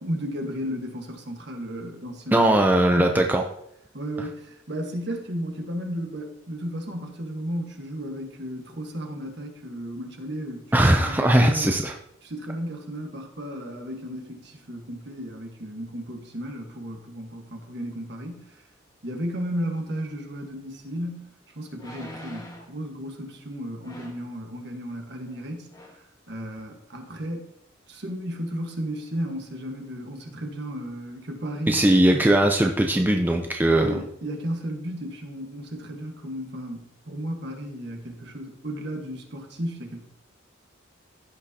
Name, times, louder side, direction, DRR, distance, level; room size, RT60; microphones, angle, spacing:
voice 1, 0.0-2.6 3.0-3.3 3.9-11.8 12.2-18.6 19.0-27.5 27.9-31.8 33.7-40.0, equal, 55° right, 3 dB, 1.5 m, -34 dB
voice 2, 2.3-3.4 10.7-11.9 31.7-34.0, right 1 dB, 10° right, 3 dB, 0.5 m, -19 dB
sound 1, 20.7-20.8 21.7-22.8 23.8-24.3 25.3-25.4 25.7-26.0 26.6-26.7, left 1 dB, 20° left, 1.5 m, -43 dB
15.5 x 6.2 x 2.9 m, 0.74 s
head